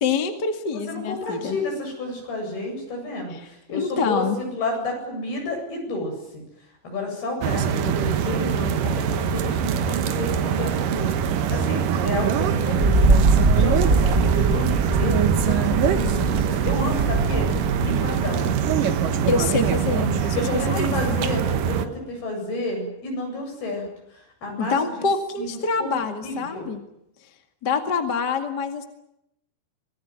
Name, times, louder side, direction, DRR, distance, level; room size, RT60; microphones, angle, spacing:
voice 1, 0.0-1.6 3.3-3.4 3.7-4.4 19.3-20.4 20.7-21.2 24.6-26.8 27.6-28.8, left 5 dB, 40° left, 6 dB, 1.6 m, -25 dB
voice 2, 0.9-6.4 6.8-11.1 11.5-13.0 13.5-17.5 17.8-18.5 18.8-19.3 20.3-23.8 24.1-25.1 25.4-26.0 26.2-26.7, left 2 dB, 60° left, 2 dB, 10.0 m, -31 dB
sound 1, 7.4-21.9, right 8 dB, 65° right, 2.3 m, -23 dB
Wind, 12.8-18.3, right 2 dB, 30° right, 1.2 m, -22 dB
26.0 x 19.5 x 9.4 m, 0.81 s
omnidirectional pair, 5.2 m